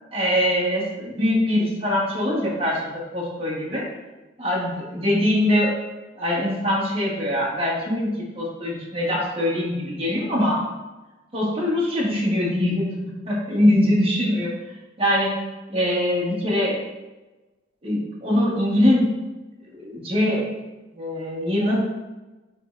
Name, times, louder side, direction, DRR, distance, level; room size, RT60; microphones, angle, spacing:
voice 1, 0.1-3.8 4.4-5.7 6.2-10.6 11.3-14.5 15.0-15.4 15.7-16.8 17.8-19.1 19.6-20.4 20.9-21.8, left 1 dB, 30° right, -5 dB, 1.2 m, -22 dB
6.9 x 3.2 x 2.4 m, 1.1 s
head